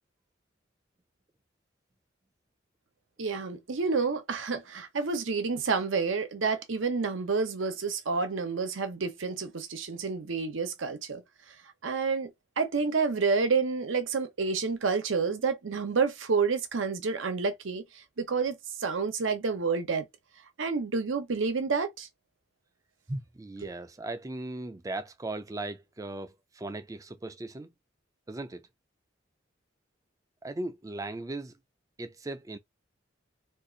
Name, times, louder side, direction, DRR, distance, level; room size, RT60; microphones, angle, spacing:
voice 1, 3.2-11.2 11.8-12.3 12.6-20.1 20.6-22.1 23.6-23.7, right 4 dB, 85° right, 0.7 m, -29 dB
voice 2, 23.1-27.7 28.3-28.7 30.4-31.5 32.0-32.6, right 2 dB, 15° right, 0.3 m, -38 dB
2.6 x 2.4 x 3.8 m
head